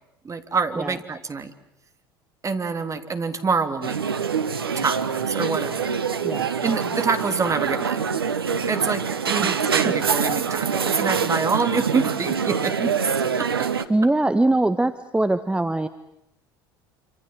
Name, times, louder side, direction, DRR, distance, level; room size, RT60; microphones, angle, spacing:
voice 1, 0.2-1.5 2.4-4.0 4.8-5.9 6.6-8.0 8.7-13.0 13.4-13.7, right 4 dB, 25° right, 7 dB, 3.3 m, -26 dB
sound 1, 3.8-13.9, right 6 dB, 90° right, 1.3 m, -25 dB
voice 2, 13.9-15.9, right 2 dB, 10° right, 10 dB, 1.5 m, -22 dB
28.0 x 26.5 x 7.6 m, 0.79 s
hypercardioid pair, 70°, 12 cm